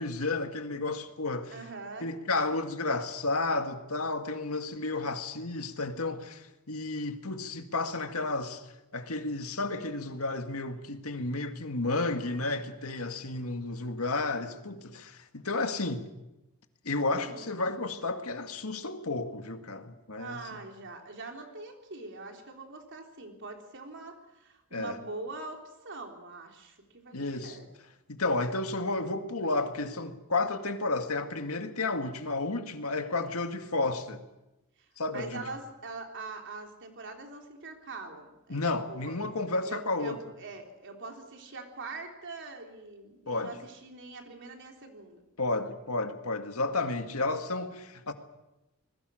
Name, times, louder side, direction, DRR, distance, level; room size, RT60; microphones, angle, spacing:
voice 1, 0.0-1.5 2.0-8.6 8.9-16.1 16.8-20.6 24.7-25.0 27.1-27.6 28.1-34.2 35.0-35.4 38.5-40.2 43.3-43.6 45.4-48.1, left 3 dB, 75° left, 2.1 m, -32 dB
voice 2, 1.5-2.1 17.1-17.5 20.2-27.7 35.1-38.6 38.9-39.2 39.6-45.3, right 3 dB, 55° right, 3.8 m, -43 dB
26.5 x 21.0 x 6.5 m
head